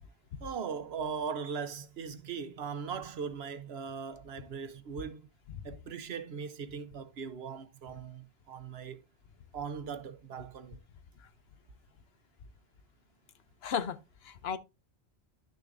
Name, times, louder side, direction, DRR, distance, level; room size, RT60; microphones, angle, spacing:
voice 1, 0.4-5.3 5.6-9.0 9.5-10.8, right 6 dB, 75° right, 1.1 m, -39 dB
voice 2, 13.6-14.6, left 7 dB, 75° left, 0.9 m, -35 dB
11.0 x 6.6 x 2.6 m
omnidirectional pair, 1.1 m